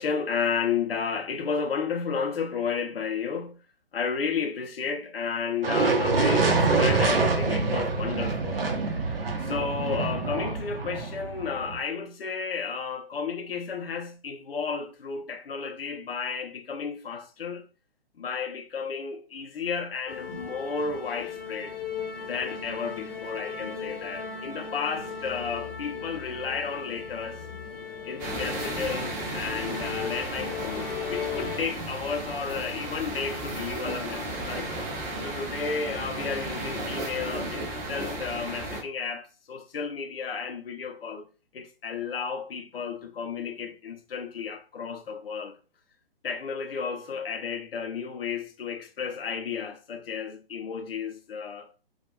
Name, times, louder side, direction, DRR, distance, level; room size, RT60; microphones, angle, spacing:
voice 1, 0.0-3.6 3.9-17.6 18.2-21.8 22.3-27.4 28.0-34.7 35.2-41.3 41.5-45.6 46.2-51.7, left 6 dB, 70° left, 0.5 m, -32 dB
sound 1, 5.6-11.8, right 3 dB, 65° right, 0.7 m, -25 dB
sound 2, 20.1-31.6, left 6 dB, 25° left, 0.6 m, -37 dB
sound 3, 28.2-38.8, right 1 dB, 20° right, 0.6 m, -34 dB
2.3 x 2.2 x 2.8 m
figure-of-eight pair, 130°, 31 cm